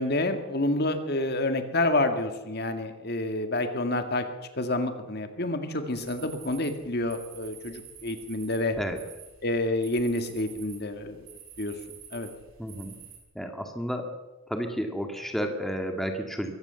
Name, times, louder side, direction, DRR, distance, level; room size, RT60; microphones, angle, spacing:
voice 1, 0.0-4.2 4.6-8.8 9.4-11.2 11.6-11.7 12.1-12.3, left 2 dB, 50° left, 7 dB, 2.0 m, -28 dB
sound 1, 5.9-13.2, right 8 dB, 80° right, 6.1 m, -49 dB
voice 2, 12.6-13.0 13.4-14.1 14.5-16.6, equal, ahead, 4 dB, 2.0 m, -31 dB
23.0 x 16.0 x 7.0 m, 1.1 s
head